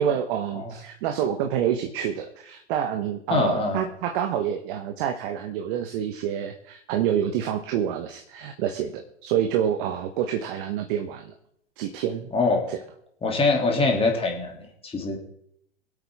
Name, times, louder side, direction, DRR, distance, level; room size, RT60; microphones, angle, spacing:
voice 1, 0.0-11.3 11.8-12.3 12.7-12.8, right 9 dB, 50° right, 6 dB, 1.2 m, -27 dB
voice 2, 3.3-3.9 12.3-12.7 13.2-15.2, left 3 dB, 15° left, 0 dB, 2.9 m, -23 dB
23.5 x 8.5 x 3.6 m, 0.71 s
figure-of-eight pair, 100°, 34 cm